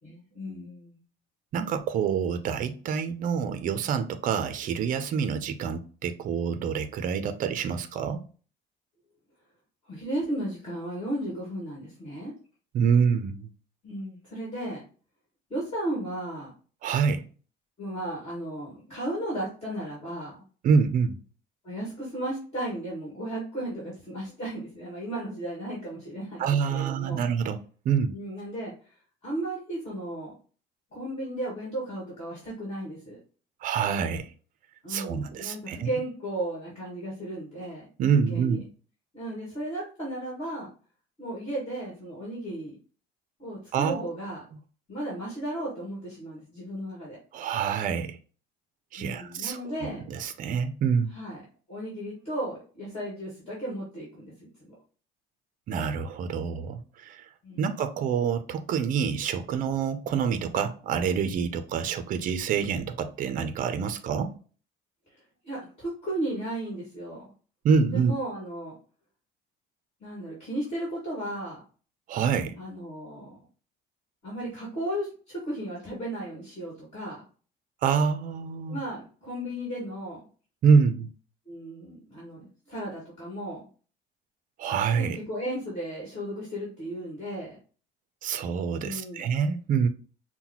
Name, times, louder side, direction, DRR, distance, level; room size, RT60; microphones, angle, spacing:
voice 1, 0.0-1.0 9.9-12.3 13.8-14.8 15.5-16.5 17.8-20.3 21.6-27.2 28.1-28.7 29.2-30.3 30.9-33.2 34.8-37.9 38.3-38.6 39.1-40.7 41.2-42.7 43.4-44.4 44.9-47.2 49.0-50.1 51.1-51.4 51.7-54.3 54.6-54.7 57.4-57.8 65.1-67.2 67.9-68.7 70.0-71.6 72.6-73.4 74.2-77.2 78.7-80.2 81.5-83.6 84.9-87.6 88.8-89.3, right 1 dB, 30° left, 1.9 m, -35 dB
voice 2, 1.5-8.2 12.7-13.5 16.8-17.2 20.6-21.2 26.4-27.6 27.8-28.1 33.6-34.3 34.9-35.9 38.0-38.6 43.7-44.0 47.3-48.2 48.9-51.1 55.7-57.3 57.6-64.3 67.6-68.1 72.1-72.5 77.8-78.8 80.6-81.1 84.6-85.2 88.2-89.9, right 6 dB, 40° right, 0.5 m, -26 dB
5.5 x 2.2 x 2.9 m
cardioid pair, 160°, 21 cm